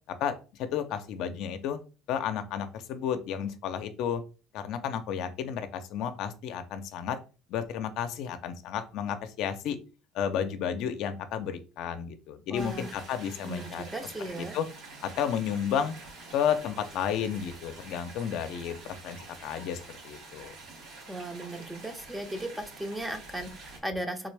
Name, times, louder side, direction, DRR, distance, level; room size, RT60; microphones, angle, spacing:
voice 1, 0.1-1.8 2.1-4.2 4.5-7.2 7.5-9.8 10.1-13.8 14.4-14.7 15.0-15.9 16.3-20.5, left 8 dB, 70° left, 8 dB, 0.5 m, -32 dB
voice 2, 12.5-12.9 13.4-14.6 21.1-24.3, right 1 dB, 10° right, 6 dB, 0.6 m, -36 dB
sound 1, 12.5-23.8, right 3 dB, 65° right, 1.7 m, -47 dB
3.6 x 2.5 x 3.3 m, 0.33 s
cardioid pair, 110°, 0 cm